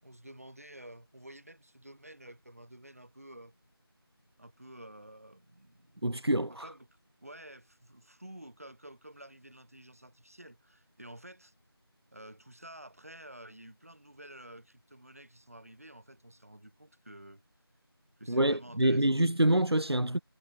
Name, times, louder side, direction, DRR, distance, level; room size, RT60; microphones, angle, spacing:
voice 1, 0.0-3.5 4.4-6.2 6.5-6.9 7.2-11.5 12.1-17.4 18.2-19.3, right 1 dB, 35° right, 6.0 m, -51 dB
voice 2, 6.0-6.7 18.3-20.2, right 1 dB, 80° right, 1.8 m, -26 dB
figure-of-eight pair, 180°, 13 cm